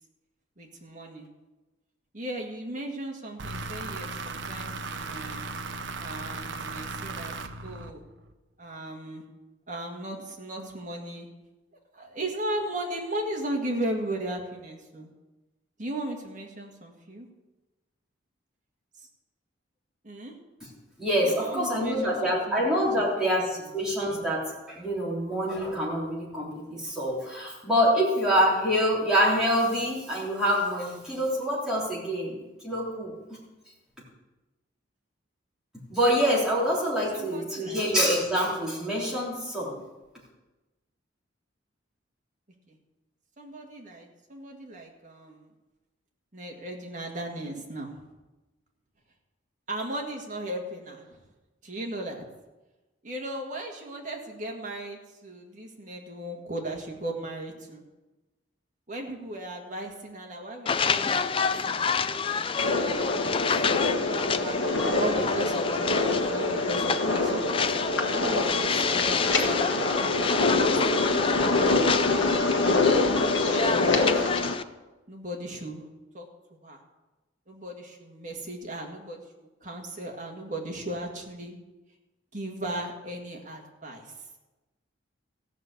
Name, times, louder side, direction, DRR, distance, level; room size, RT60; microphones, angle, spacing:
voice 1, 0.6-1.3 2.1-5.4 6.0-7.3 7.6-8.0 8.6-9.2 9.7-11.3 11.9-15.1 15.8-17.3 19.0-19.1 20.0-20.3 21.2-22.7 23.0-23.7 37.1-37.8 42.7-42.8 43.4-45.5 46.3-48.0 49.7-51.2 51.6-52.3 53.0-57.8 58.9-64.6 65.0-70.0 70.8-73.1 73.4-74.4 75.1-75.9 76.1-76.3 76.6-76.8 77.5-81.6 82.3-84.1, right 1 dB, 40° right, 1 dB, 1.9 m, -37 dB
sound 1, 3.4-8.3, right 3 dB, 65° right, 0.7 m, -36 dB
voice 2, 21.0-33.1 35.9-39.8, equal, 5° right, -6 dB, 3.5 m, -26 dB
sound 2, 60.7-74.6, left 6 dB, 25° left, 0.3 m, -28 dB
sound 3, 62.6-74.5, left 2 dB, 65° left, 1.4 m, -25 dB
15.0 x 6.3 x 8.2 m, 1.1 s
head